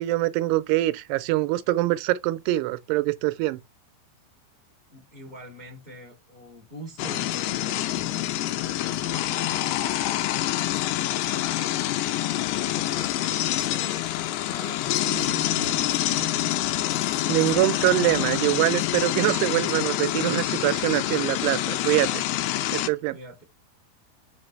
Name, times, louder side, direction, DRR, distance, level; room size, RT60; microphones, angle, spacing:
voice 1, 0.0-3.6 17.3-22.2 22.7-23.2, right 17 dB, 90° right, 2.7 m, -24 dB
voice 2, 4.9-12.0 12.5-16.5 23.1-23.4, right 1 dB, 20° left, 1.4 m, -44 dB
sound 1, 7.0-22.9, left 14 dB, 80° left, 2.6 m, -26 dB
5.9 x 5.1 x 3.2 m
omnidirectional pair, 4.7 m